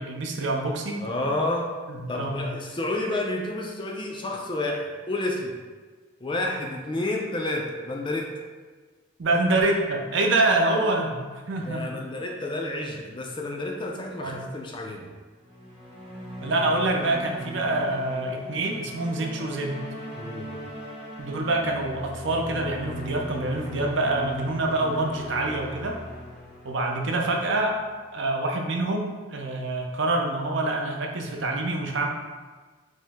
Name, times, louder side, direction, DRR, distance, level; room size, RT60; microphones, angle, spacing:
voice 1, 0.0-1.1 1.9-2.5 9.2-12.0 14.2-14.4 16.4-19.8 21.2-26.0 26.6-27.8 28.1-32.1, right 2 dB, 65° right, 1 dB, 0.5 m, -26 dB
voice 2, 1.0-1.7 2.1-5.6 6.2-8.3 11.6-15.1 20.2-20.6, left 2 dB, 25° left, 1 dB, 0.3 m, -30 dB
sound 1, 15.4-27.9, left 1 dB, 25° right, 0.9 m, -39 dB
5.3 x 2.0 x 3.5 m, 1.4 s
head